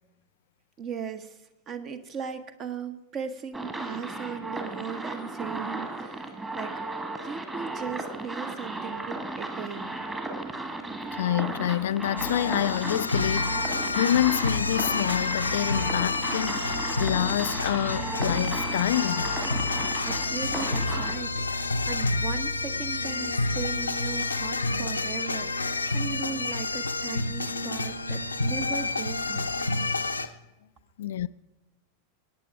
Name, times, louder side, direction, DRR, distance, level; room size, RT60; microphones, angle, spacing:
voice 1, 0.8-1.4 1.7-10.0 19.6-19.8 20.0-29.7, right 7 dB, 30° right, 1.2 m, -38 dB
sound 1, 3.5-21.1, right 2 dB, 15° right, 1.8 m, -35 dB
Musical instrument, 9.8-24.3, left 3 dB, 60° right, 3.4 m, -49 dB
voice 2, 11.1-19.3 31.0-31.3, left 12 dB, 60° left, 0.4 m, -27 dB
sound 2, 12.2-30.3, left 3 dB, 80° left, 0.7 m, -29 dB
21.5 x 9.3 x 4.7 m
figure-of-eight pair, 90°, 0 cm